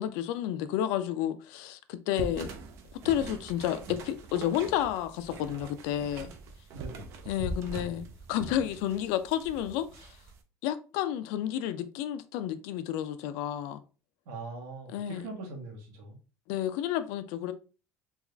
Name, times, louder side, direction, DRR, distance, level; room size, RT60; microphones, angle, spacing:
voice 1, 0.0-2.5 3.0-6.3 7.3-10.1 10.6-13.8 14.9-15.3 16.5-17.5, left 11 dB, 80° left, 0.4 m, -31 dB
sound 1, 2.2-10.4, right 3 dB, 50° right, 0.5 m, -42 dB
voice 2, 6.7-7.2 14.2-16.2, right 3 dB, 75° right, 1.3 m, -41 dB
3.5 x 2.4 x 3.1 m
cardioid pair, 165°, 6 cm